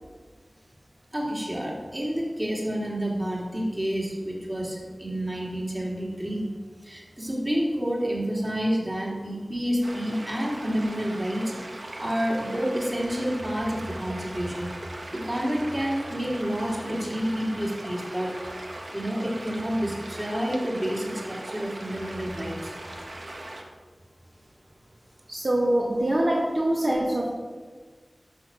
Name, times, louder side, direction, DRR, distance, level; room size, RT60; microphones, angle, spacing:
voice 1, 1.1-6.5 6.8-11.5 12.0-14.7 15.1-18.3 18.9-22.7, equal, 25° right, -3 dB, 3.3 m, -29 dB
sound 1, 9.8-23.6, right 1 dB, 70° right, 1.7 m, -40 dB
voice 2, 25.3-27.3, right 1 dB, 55° right, -4 dB, 2.1 m, -24 dB
13.0 x 6.3 x 6.4 m, 1.5 s
wide cardioid pair, 70°, 0 cm